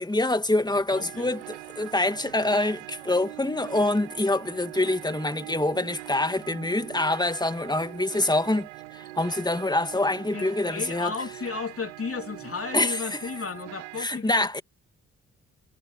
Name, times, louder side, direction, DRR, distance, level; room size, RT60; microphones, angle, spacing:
voice 1, 0.0-8.7 8.9-11.1 12.7-13.2 14.0-14.6, left 2 dB, 10° left, 2.2 m, -25 dB
voice 2, 0.9-1.3 10.3-14.5, left 5 dB, 40° left, 3.5 m, -34 dB
sound 1, 0.9-14.1, right 20 dB, 90° right, 1.0 m, -42 dB
hypercardioid pair, 40°, 34 cm